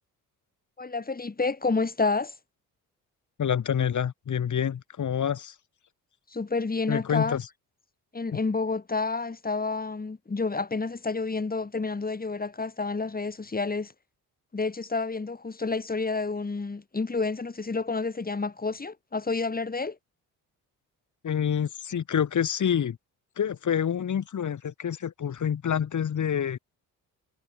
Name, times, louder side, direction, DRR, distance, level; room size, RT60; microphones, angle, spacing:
voice 1, 0.8-2.3 6.3-7.4 8.1-13.9 14.5-20.0, left 3 dB, 25° left, 5.5 m, -29 dB
voice 2, 3.4-5.5 6.9-7.5 8.3-8.4 21.2-23.0 23.4-26.6, left 8 dB, 55° left, 6.3 m, -27 dB
supercardioid pair, 75°, 35 cm